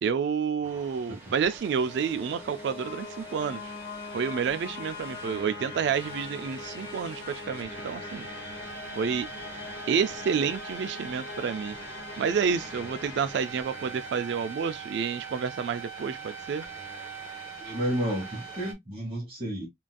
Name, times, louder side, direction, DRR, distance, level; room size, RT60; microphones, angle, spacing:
voice 1, 0.0-3.7 4.1-8.3 9.0-9.3 9.9-11.8 12.2-16.6, right 6 dB, 65° right, 0.3 m, -29 dB
sound 1, 0.6-18.7, right 4 dB, 10° right, 0.8 m, -43 dB
sound 2, 1.4-14.4, left 4 dB, 80° left, 0.7 m, -42 dB
voice 2, 17.6-19.7, equal, 30° right, 1.2 m, -31 dB
3.8 x 2.5 x 2.2 m
head